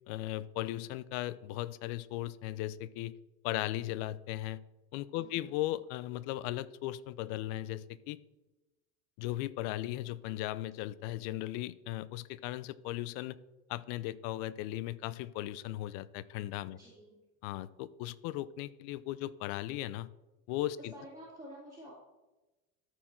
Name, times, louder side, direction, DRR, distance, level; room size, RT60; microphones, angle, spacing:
voice 1, 0.1-3.1 3.4-4.6 4.9-8.2 9.2-13.4 13.7-16.8 17.4-20.1 20.5-20.9, left 15 dB, 65° left, 18 dB, 0.5 m, -37 dB
voice 2, 5.1-5.5 16.7-17.2 20.8-21.9, equal, 10° right, -7 dB, 2.2 m, -50 dB
13.0 x 4.5 x 4.4 m, 1.1 s
supercardioid pair, 120°, 34 cm